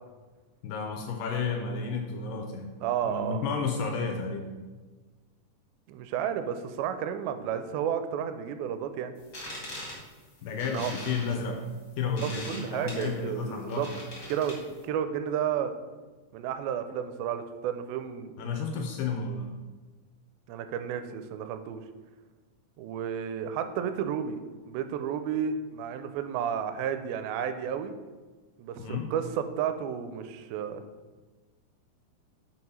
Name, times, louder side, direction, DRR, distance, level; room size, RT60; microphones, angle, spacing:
voice 1, 0.6-2.7 3.0-4.5 10.4-11.6 12.0-14.0 18.4-19.5 28.8-29.1, left 4 dB, 80° left, 3 dB, 2.0 m, -32 dB
voice 2, 2.8-3.4 5.9-9.1 10.7-10.9 12.2-13.9 14.3-15.7 16.3-18.3 20.5-21.8 22.8-24.4 24.7-27.9 28.6-30.8, right 8 dB, 80° right, 9 dB, 2.3 m, -32 dB
sound 1, 9.2-14.8, left 1 dB, 40° left, 1.3 m, -42 dB
5.5 x 4.7 x 5.4 m, 1.3 s
omnidirectional pair, 4.4 m